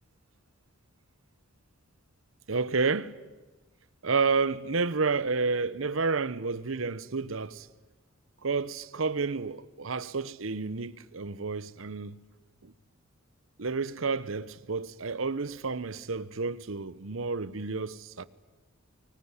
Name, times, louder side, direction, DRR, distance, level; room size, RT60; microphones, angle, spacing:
voice 1, 2.5-3.1 4.0-7.7 8.4-12.2 12.6-12.7 13.6-18.2, right 4 dB, 70° right, 0.9 m, -30 dB
24.0 x 23.5 x 9.8 m
head